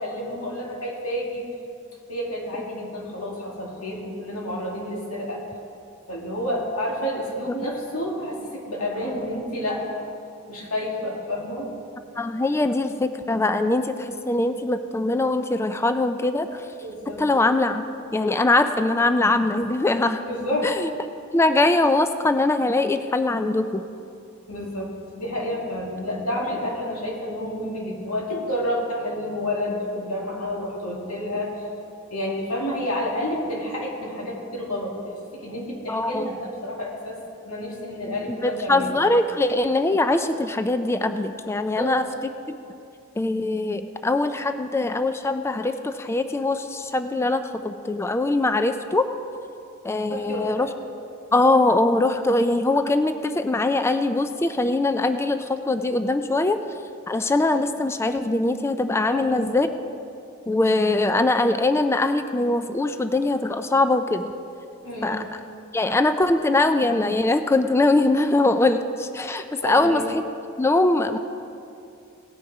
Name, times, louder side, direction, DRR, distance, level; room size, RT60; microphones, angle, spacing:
voice 1, 0.0-1.4 2.1-5.4 6.1-10.0 10.5-11.7 16.8-17.2 20.3-20.7 24.5-31.5 32.1-37.2 37.4-38.9 41.8-41.9 50.1-50.7 59.1-59.5 64.8-65.3 69.6-70.0, left 1 dB, 90° left, -2 dB, 2.4 m, -29 dB
voice 2, 12.2-16.7 17.2-17.8 18.1-20.2 20.6-20.9 21.3-23.8 35.9-36.3 38.3-42.0 43.2-49.1 49.8-50.7 51.3-56.6 57.1-59.7 60.5-64.3 65.0-65.3 65.7-70.2 70.6-71.2, left 2 dB, 10° left, 9 dB, 0.3 m, -22 dB
18.0 x 6.3 x 4.9 m, 2.6 s
head